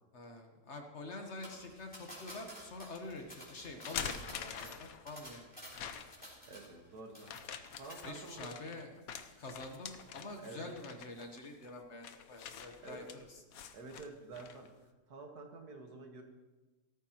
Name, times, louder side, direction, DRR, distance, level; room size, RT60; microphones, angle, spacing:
voice 1, 0.1-5.5 8.0-9.0 9.4-13.4, left 2 dB, 50° left, 4 dB, 1.5 m, -47 dB
sound 1, 1.4-6.9 7.1-7.6 7.9-8.1, equal, 5° left, 3.5 m, -51 dB
sound 2, 1.8-2.4 2.9-3.0 3.6-5.2 5.7-6.3 7.2-14.7, left 7 dB, 70° left, 1.2 m, -46 dB
voice 2, 6.5-7.4 7.8-8.6 10.4-10.7 12.8-13.0 13.7-14.7 15.1-16.2, right 3 dB, 80° right, 3 dB, 2.1 m, -49 dB
16.0 x 13.5 x 3.0 m, 1.2 s
omnidirectional pair, 1.6 m